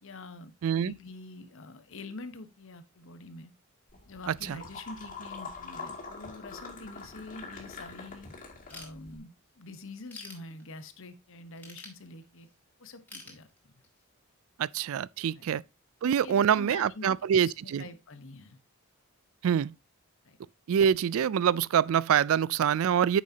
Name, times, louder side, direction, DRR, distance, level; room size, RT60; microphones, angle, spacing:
voice 1, 0.0-3.5 4.1-8.3 8.7-12.5 12.8-13.7 15.3-15.5 16.2-18.6 20.2-20.4, left 3 dB, 60° left, 1.1 m, -46 dB
voice 2, 0.6-0.9 4.3-4.6 14.6-15.6 16.0-17.8 19.4-19.7 20.7-23.2, right 8 dB, 65° right, 0.3 m, -25 dB
sound 1, 3.9-9.2, left 4 dB, 40° left, 2.5 m, -44 dB
Ratchet pawl / Tools, 8.7-9.5 9.9-11.0 11.6-12.5 13.1-14.1, left 2 dB, 10° left, 2.5 m, -48 dB
9.2 x 6.3 x 2.8 m
head